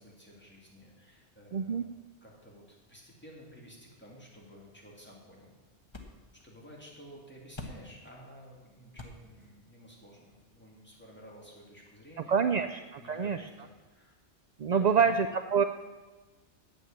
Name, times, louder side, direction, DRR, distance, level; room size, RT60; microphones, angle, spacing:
voice 1, 0.0-1.9 2.2-5.5 6.4-12.7 13.0-14.2 14.7-15.1, equal, 10° left, -4 dB, 2.8 m, -53 dB
voice 2, 1.5-1.8 12.3-13.4 14.6-15.6, right 6 dB, 65° right, 9 dB, 0.4 m, -26 dB
sound 1, 4.2-11.3, left 2 dB, 25° left, 1.2 m, -52 dB
8.9 x 8.0 x 8.6 m, 1.2 s
omnidirectional pair, 1.2 m